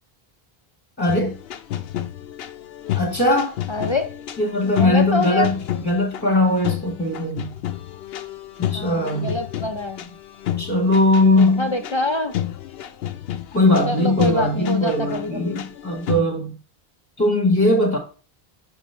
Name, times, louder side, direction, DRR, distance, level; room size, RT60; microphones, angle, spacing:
voice 1, 1.0-1.4 2.9-3.5 4.4-5.6 5.8-7.5 8.7-9.3 10.6-11.7 13.5-16.5 17.2-18.0, left 1 dB, 10° left, 0.8 m, -19 dB
sound 1, 1.1-16.2, left 11 dB, 80° left, 0.8 m, -31 dB
voice 2, 3.7-4.2 4.6-5.5 8.7-10.2 11.3-12.4 13.9-15.6, left 2 dB, 50° left, 0.3 m, -26 dB
6.1 x 3.3 x 5.3 m
omnidirectional pair, 1.0 m